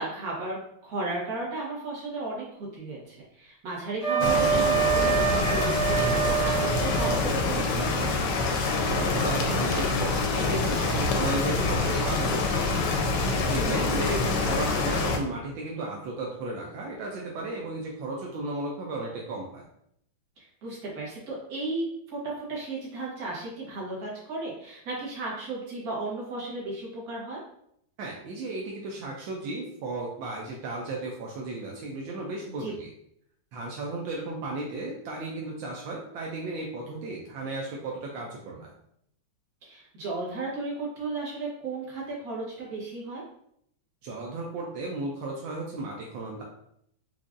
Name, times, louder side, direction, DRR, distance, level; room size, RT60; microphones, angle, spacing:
voice 1, 0.0-8.1 13.5-13.9 20.4-27.4 32.6-32.7 39.6-43.2, right 3 dB, 55° right, -5 dB, 1.6 m, -35 dB
Wind instrument woodwind instrument, 4.0-7.2, right 8 dB, 35° right, 0.6 m, -26 dB
sound 1, 4.2-15.2, left 3 dB, 75° left, 1.2 m, -26 dB
voice 2, 8.9-12.8 13.3-19.6 28.0-32.9 33.5-38.7 44.0-46.4, right 2 dB, 80° right, -2 dB, 1.3 m, -34 dB
4.7 x 2.5 x 2.5 m, 0.73 s
omnidirectional pair, 2.1 m